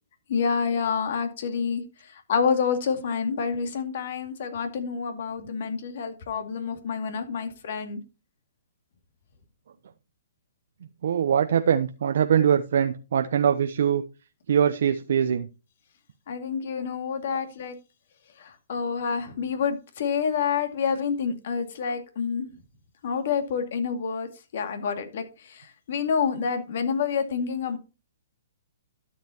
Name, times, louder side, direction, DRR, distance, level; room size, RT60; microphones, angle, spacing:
voice 1, 0.3-8.0 16.3-17.8 18.4-22.5 23.0-24.3 24.5-27.8, left 6 dB, 60° left, 7 dB, 2.3 m, -28 dB
voice 2, 11.0-14.0 14.5-15.5 17.3-17.4, right 8 dB, 70° right, 8 dB, 0.7 m, -22 dB
12.5 x 7.3 x 2.9 m, 0.30 s
hypercardioid pair, 145°, 0 cm